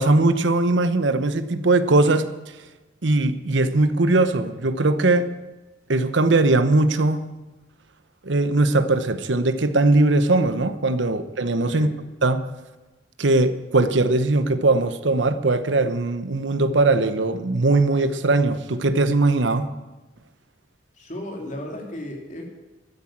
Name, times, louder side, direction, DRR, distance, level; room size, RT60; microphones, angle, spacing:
voice 1, 0.0-2.3 3.0-5.4 5.9-7.3 8.2-11.9 12.2-12.4 13.2-19.7, right 2 dB, 75° right, 0.9 m, -20 dB
voice 2, 20.9-22.5, left 1 dB, 40° left, 3.0 m, -34 dB
13.0 x 10.0 x 8.7 m
head